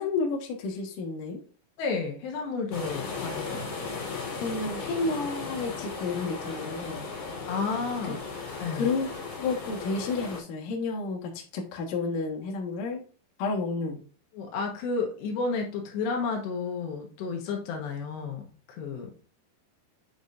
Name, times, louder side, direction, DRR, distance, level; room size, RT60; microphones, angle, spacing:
voice 1, 0.0-1.4 4.3-7.0 8.7-9.1 9.4-13.0 13.4-14.0, left 3 dB, 60° left, 0 dB, 2.7 m, -31 dB
voice 2, 1.8-3.7 7.5-8.2 8.6-8.9 14.3-18.5 18.8-19.1, left 4 dB, 80° left, 2 dB, 3.1 m, -31 dB
sound 1, 2.7-10.4, left 4 dB, 40° left, 2.9 m, -36 dB
8.1 x 6.5 x 2.6 m, 0.40 s
omnidirectional pair, 5.0 m